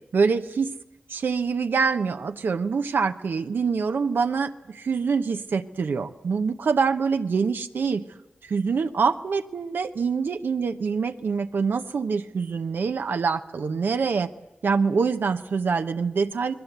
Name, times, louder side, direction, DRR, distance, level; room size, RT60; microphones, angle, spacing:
voice 1, 0.1-0.7 1.1-8.0 8.4-14.3 14.6-16.5, right 5 dB, 85° right, 7 dB, 0.9 m, -25 dB
29.5 x 20.5 x 8.1 m, 0.97 s
cardioid pair, 50°, 3 cm